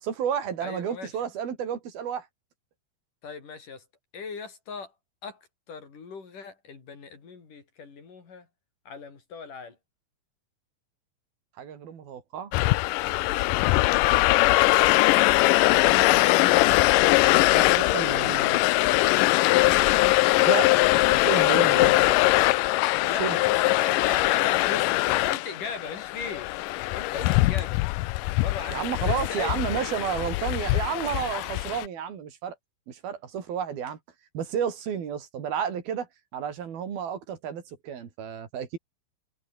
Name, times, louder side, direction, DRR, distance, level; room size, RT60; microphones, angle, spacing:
voice 1, 0.0-2.3 11.6-12.5 15.6-16.8 17.6-18.6 20.5-20.7 21.1-22.4 23.2-23.4 28.7-32.6 32.9-34.0 34.4-38.8, right 8 dB, 80° right, 5.1 m, -32 dB
voice 2, 0.6-1.1 3.2-3.8 4.1-4.9 5.2-8.5 8.9-9.8 23.0-26.5 26.9-27.8 28.3-30.0, left 5 dB, 60° left, 6.3 m, -40 dB
sound 1, 12.5-31.9, left 19 dB, 80° left, 2.1 m, -22 dB
omnidirectional pair, 4.2 m